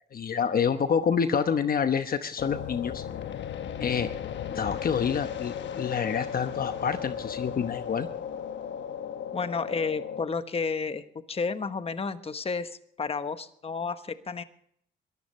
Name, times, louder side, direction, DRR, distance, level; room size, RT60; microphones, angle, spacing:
voice 1, 0.1-3.0 3.8-4.1 4.5-8.1, left 7 dB, 50° left, 9 dB, 1.0 m, -27 dB
sound 1, 2.4-10.2, left 8 dB, 65° left, 1.2 m, -36 dB
voice 2, 9.3-14.4, left 4 dB, 30° left, 10 dB, 1.2 m, -31 dB
22.5 x 14.5 x 3.2 m, 0.65 s
cardioid pair, 90°, 20 cm